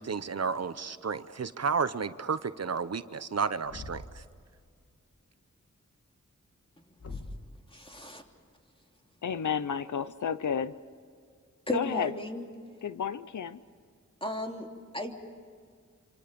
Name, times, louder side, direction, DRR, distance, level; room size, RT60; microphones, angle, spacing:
voice 1, 0.0-4.0, right 5 dB, 60° right, 12 dB, 0.9 m, -32 dB
Thump thud, 3.6-4.3 7.0-7.5, left 2 dB, 60° left, 2.7 m, -42 dB
voice 2, 7.7-8.2 11.7-12.5 14.2-14.7 14.9-15.1, left 1 dB, 20° left, 2 dB, 3.1 m, -34 dB
voice 3, 9.2-10.7 11.7-12.1 12.8-13.6, left 7 dB, 90° left, 14 dB, 0.8 m, -31 dB
27.0 x 26.5 x 5.3 m, 2.1 s
wide cardioid pair, 70°, 29 cm